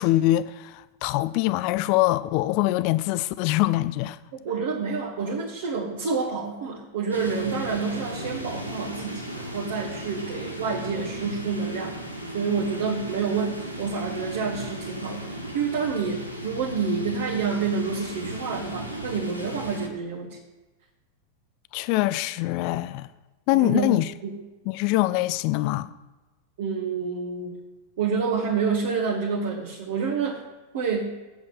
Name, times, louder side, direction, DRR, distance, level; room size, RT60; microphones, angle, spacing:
voice 1, 0.0-4.2 21.7-23.1 23.5-24.1 24.7-25.9, left 17 dB, 45° left, 0.5 m, -23 dB
voice 2, 4.3-12.0 12.3-15.2 15.5-20.4 23.5-24.3 26.6-27.6 28.0-30.4 30.7-31.1, right 5 dB, 55° right, 1.8 m, -28 dB
sound 1, 7.1-19.9, right 1 dB, 85° right, 1.5 m, -36 dB
8.1 x 8.0 x 7.1 m
figure-of-eight pair, 90°, 0 cm